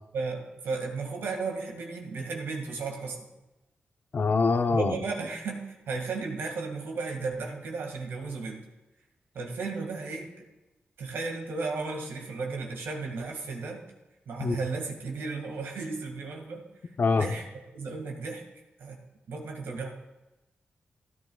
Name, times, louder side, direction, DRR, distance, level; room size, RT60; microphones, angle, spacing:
voice 1, 0.1-3.3 4.7-8.6 9.3-10.3 11.0-13.8 14.3-16.6 17.2-17.4 17.7-18.4 18.8-19.0 19.3-19.9, right 4 dB, 90° right, 1 dB, 2.0 m, -34 dB
voice 2, 4.1-4.9 14.4-14.6 17.0-17.3, left 4 dB, 55° left, 8 dB, 0.8 m, -24 dB
15.5 x 10.5 x 2.4 m, 1.0 s
cardioid pair, 55°, 4 cm